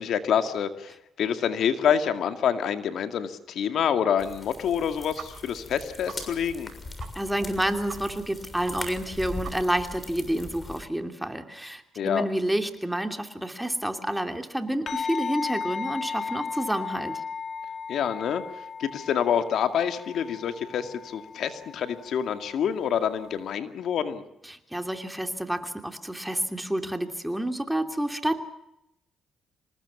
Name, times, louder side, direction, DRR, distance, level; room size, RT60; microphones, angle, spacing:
voice 1, 0.0-6.7 12.0-12.3 17.9-18.4 18.8-24.2, left 8 dB, 70° left, 8 dB, 2.2 m, -27 dB
sound 1, 4.2-10.8, left 2 dB, 25° left, 6.7 m, -40 dB
sound 2, 5.2-5.3 5.6-5.7 6.1-6.2 6.6-6.7 7.0-7.1 7.4-7.5 7.9-8.0 8.3-8.4 8.6-8.7 9.0-9.1 9.4-9.8, right 7 dB, 55° right, 4.1 m, -41 dB
voice 2, 7.1-17.2 24.4-28.4, right 1 dB, 5° right, 6 dB, 2.9 m, -29 dB
sound 3, 14.9-23.6, left 5 dB, 50° left, 2.0 m, -36 dB
26.5 x 19.5 x 7.2 m, 0.83 s
cardioid pair, 90°, 0 cm